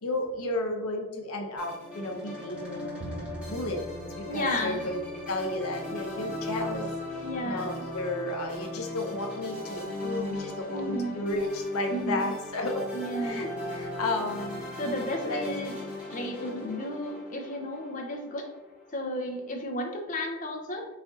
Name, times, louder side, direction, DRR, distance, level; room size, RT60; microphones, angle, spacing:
voice 1, 0.0-3.0 3.5-3.8 4.1-5.0 5.3-12.9 13.2-14.7 15.2-15.4 16.4-16.8, left 1 dB, 80° left, 2 dB, 0.7 m, -33 dB
sound 1, 1.6-18.9, left 2 dB, 5° right, 1.1 m, -37 dB
Bowed string instrument, 3.0-9.2, right 1 dB, 40° right, 0.5 m, -47 dB
voice 2, 4.3-4.8 7.2-7.8 10.7-11.2 11.9-12.3 12.9-13.4 14.8-15.7 16.1-18.4 18.9-20.9, left 1 dB, 35° left, 2 dB, 0.6 m, -33 dB
4.2 x 2.6 x 3.7 m, 1.0 s
head